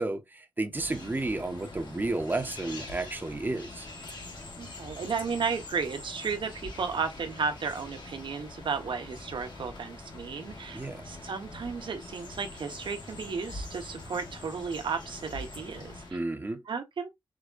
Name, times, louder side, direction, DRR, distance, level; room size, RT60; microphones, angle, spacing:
voice 1, 0.0-3.9 10.7-11.0 16.1-16.6, right 2 dB, 20° right, 0.8 m, -32 dB
sound 1, 0.7-16.1, left 2 dB, 65° left, 1.7 m, -44 dB
voice 2, 4.6-16.2 16.7-17.1, right 5 dB, 80° right, 1.1 m, -34 dB
5.0 x 3.5 x 2.4 m
wide cardioid pair, 140°, 8 cm